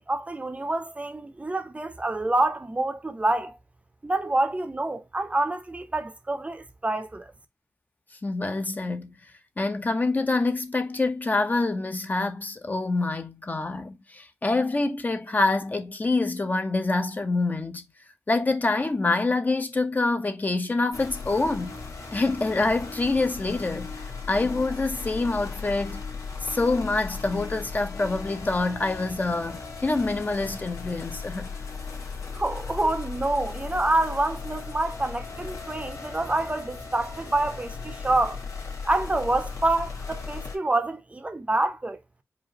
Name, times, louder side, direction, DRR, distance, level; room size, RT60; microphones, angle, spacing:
voice 1, 0.0-3.6 4.0-7.3 32.3-38.4 38.8-42.0, right 2 dB, 25° right, 0.6 m, -27 dB
voice 2, 8.2-9.1 9.6-17.8 18.3-21.8 22.1-23.9 24.3-26.0 26.4-31.5, left 3 dB, 30° left, 0.7 m, -26 dB
sound 1, 20.9-40.6, left 4 dB, 85° left, 1.7 m, -37 dB
5.0 x 2.5 x 2.9 m
wide cardioid pair, 100°, 5 cm